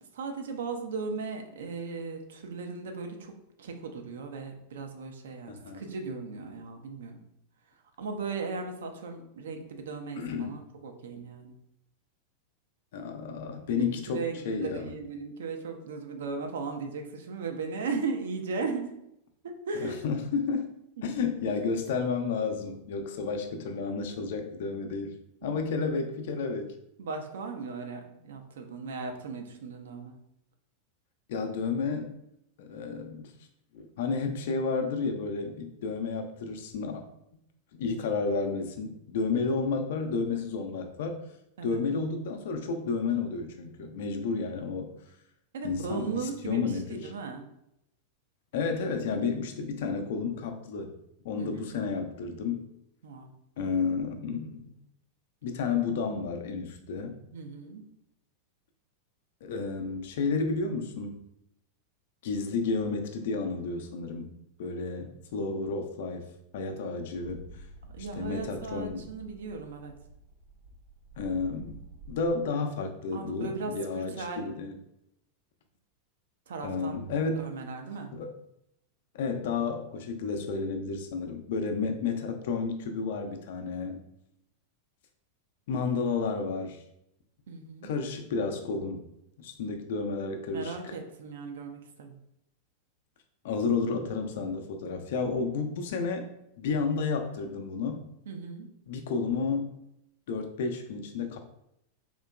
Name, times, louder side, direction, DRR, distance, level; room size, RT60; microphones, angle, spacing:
voice 1, 0.1-3.3 3.6-7.2 8.0-11.5 13.8-18.9 19.4-20.0 21.0-21.1 25.4-25.6 27.0-30.1 41.6-41.8 45.5-47.4 51.4-51.8 53.0-53.3 57.3-57.8 67.8-69.9 73.1-74.5 76.5-77.0 77.4-78.1 87.5-87.9 90.5-92.2 98.3-98.7, right 4 dB, 60° right, 5 dB, 0.5 m, -37 dB
voice 2, 5.5-5.8 10.1-10.6 12.9-14.9 19.8-25.1 25.4-26.7 31.3-32.1 32.6-33.3 33.7-37.1 37.7-41.2 41.6-44.9 45.6-47.1 48.5-50.9 51.2-52.7 53.6-54.8 55.4-57.2 59.4-61.2 62.2-64.3 64.6-66.3 66.5-67.5 68.0-69.1 71.2-71.8 72.1-74.8 76.6-77.5 78.1-78.3 79.1-84.0 85.7-86.8 87.8-89.1 89.4-90.9 93.4-96.3 96.6-98.0 98.9-99.7 100.3-101.4, left 4 dB, 55° left, 5 dB, 0.4 m, -31 dB
sound 1, 67.1-72.2, right 2 dB, 80° right, 0.8 m, -49 dB
3.7 x 2.8 x 2.3 m, 0.79 s
figure-of-eight pair, 90°, 0 cm